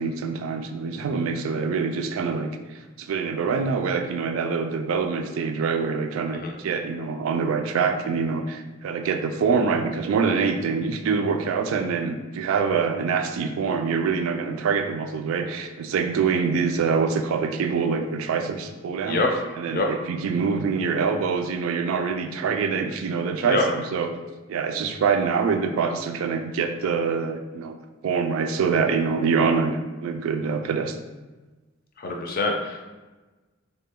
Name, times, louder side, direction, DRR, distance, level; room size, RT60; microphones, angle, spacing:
voice 1, 0.0-19.2 19.6-24.2 24.5-27.8 28.0-31.0, right 5 dB, 70° right, 6 dB, 0.3 m, -25 dB
voice 2, 32.0-32.8, left 2 dB, 45° left, 1 dB, 0.5 m, -25 dB
3.2 x 2.2 x 3.5 m, 1.2 s
head